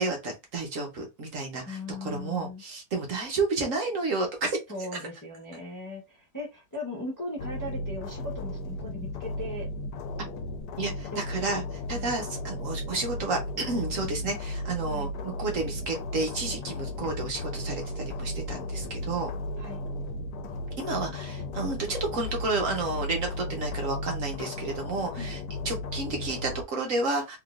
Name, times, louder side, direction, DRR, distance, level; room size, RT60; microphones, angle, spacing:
voice 1, 0.0-4.6 10.8-19.3 20.8-25.4 25.6-27.4, right 3 dB, 55° right, 1.2 m, -31 dB
voice 2, 1.6-2.6 4.7-9.7 11.1-11.4 11.9-12.1 14.9-15.1 19.6-19.9 25.2-25.3, left 2 dB, 15° left, 0.7 m, -38 dB
sound 1, 7.4-26.6, left 1 dB, 80° left, 1.2 m, -35 dB
3.5 x 2.9 x 2.4 m
omnidirectional pair, 1.7 m